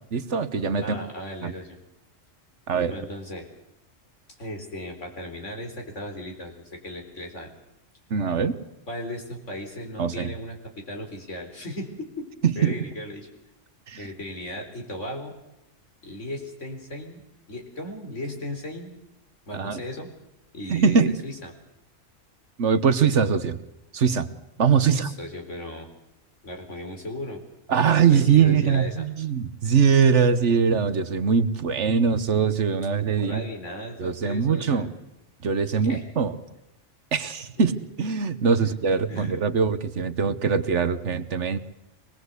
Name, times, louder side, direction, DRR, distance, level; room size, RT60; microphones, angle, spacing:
voice 1, 0.1-1.0 1.4-1.5 2.7-2.9 8.1-8.6 10.0-10.3 12.4-12.7 13.9-14.0 19.5-19.8 20.7-21.1 22.6-23.6 23.9-24.3 24.6-25.1 27.7-33.4 34.0-34.9 35.4-36.3 37.1-37.7 38.0-41.6, right 6 dB, 65° right, 12 dB, 1.4 m, -22 dB
voice 2, 0.8-1.8 2.9-3.5 4.3-7.5 8.9-12.3 12.6-13.3 14.0-15.3 16.0-17.2 17.5-19.0 19.5-20.1 20.5-21.0 21.2-21.5 24.9-25.9 26.4-27.4 28.1-29.1 33.2-34.9 35.8-36.0 37.6-37.8 38.6-38.7 39.1-39.4, left 1 dB, 65° left, 2 dB, 4.5 m, -36 dB
24.5 x 20.0 x 8.1 m, 0.89 s
omnidirectional pair, 1.3 m